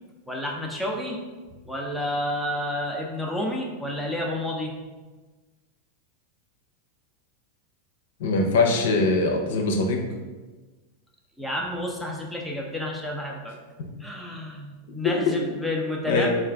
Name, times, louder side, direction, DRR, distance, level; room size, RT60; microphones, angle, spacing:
voice 1, 0.3-1.2 1.7-4.7 11.4-13.5 14.0-16.4, left 1 dB, ahead, -2 dB, 0.6 m, -30 dB
voice 2, 8.2-10.0 15.0-15.1 16.1-16.3, left 3 dB, 75° left, 2 dB, 0.6 m, -22 dB
3.7 x 2.5 x 3.3 m, 1.3 s
hypercardioid pair, 115°, 0 cm